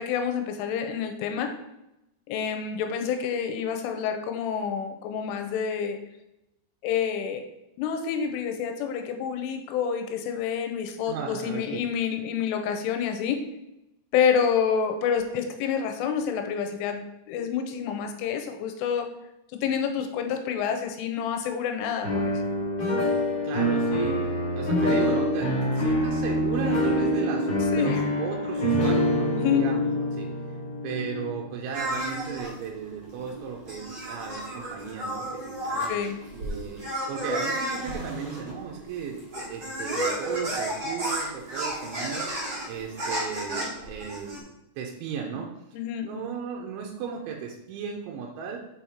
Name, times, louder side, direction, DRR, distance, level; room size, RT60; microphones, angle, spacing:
voice 1, 0.0-1.5 2.3-6.0 6.8-7.4 7.8-13.4 14.1-19.1 19.6-22.4 27.7-28.0 29.3-29.7 35.9-36.2 45.7-46.1, left 7 dB, 85° left, 6 dB, 3.2 m, -28 dB
voice 2, 11.1-11.8 23.4-30.3 30.8-36.0 36.3-36.8 37.1-42.3 42.7-44.5 44.8-45.5 46.0-48.6, right 6 dB, 85° right, -1 dB, 3.1 m, -35 dB
sound 1, 22.0-32.0, equal, 35° left, 2.0 m, -25 dB
sound 2, 31.7-44.4, right 1 dB, 70° right, 0.9 m, -33 dB
7.4 x 4.9 x 4.2 m, 0.88 s
omnidirectional pair, 5.7 m